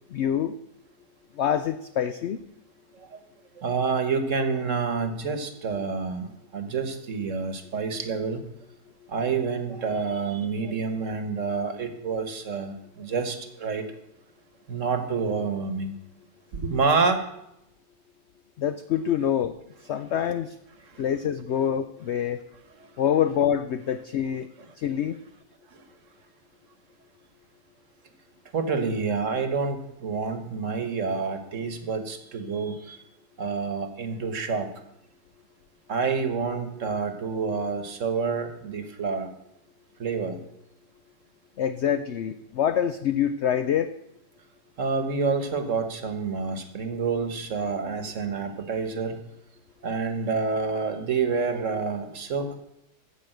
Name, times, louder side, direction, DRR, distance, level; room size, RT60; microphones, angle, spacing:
voice 1, 0.1-0.5 1.4-2.4 18.6-19.5 19.9-20.5 21.0-22.4 23.0-24.5 24.8-25.2 41.6-43.9, left 9 dB, 80° left, 10 dB, 0.6 m, -26 dB
voice 2, 3.6-8.5 9.1-13.8 14.7-16.0 16.5-17.2 20.8-21.0 22.8-22.9 25.7-25.8 28.5-33.0 33.4-34.7 35.9-39.3 40.0-40.4 44.8-49.2 49.8-52.6, right 5 dB, 50° right, 9 dB, 1.4 m, -28 dB
14.5 x 5.1 x 7.8 m, 0.84 s
omnidirectional pair, 1.8 m